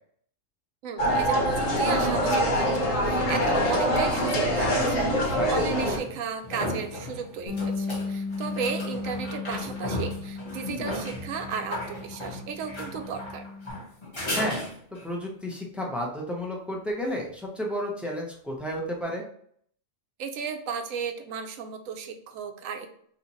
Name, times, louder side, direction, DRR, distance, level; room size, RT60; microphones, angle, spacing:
voice 1, 0.8-13.4 20.2-22.9, right 6 dB, 90° right, 6 dB, 1.0 m, -34 dB
sound 1, 1.0-6.0, equal, 80° left, 1.2 m, -24 dB
sound 2, 4.6-4.7 6.0-15.1 18.5-18.6, left 1 dB, 25° left, 0.9 m, -36 dB
Bass guitar, 7.5-13.7, left 4 dB, 60° left, 1.1 m, -36 dB
voice 2, 14.3-14.7 15.0-19.2, equal, ahead, -1 dB, 0.4 m, -32 dB
2.9 x 2.4 x 3.9 m, 0.63 s
omnidirectional pair, 1.3 m